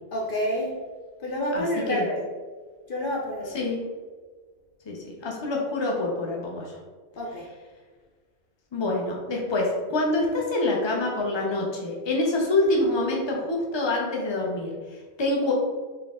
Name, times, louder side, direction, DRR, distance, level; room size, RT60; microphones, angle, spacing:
voice 1, 0.1-0.7 1.2-2.2 2.9-3.7 7.2-7.4, equal, 55° left, -2 dB, 0.8 m, -28 dB
voice 2, 1.5-2.1 3.5-3.8 4.9-6.8 8.7-15.5, left 2 dB, 25° left, -1 dB, 0.8 m, -26 dB
4.6 x 3.2 x 3.6 m, 1.4 s
omnidirectional pair, 1.1 m